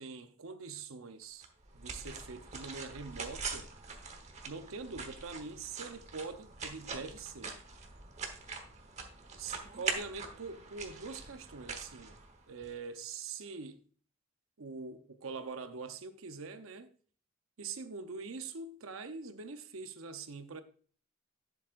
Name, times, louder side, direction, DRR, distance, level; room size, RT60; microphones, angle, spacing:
voice 1, 0.0-1.5 1.7-3.7 4.4-7.6 9.3-12.2 12.5-13.8 14.6-16.9 17.6-20.6, right 4 dB, 80° right, 0.7 m, -44 dB
sound 1, 1.4-12.7, right 4 dB, 35° right, 1.1 m, -43 dB
11.0 x 7.1 x 2.5 m
head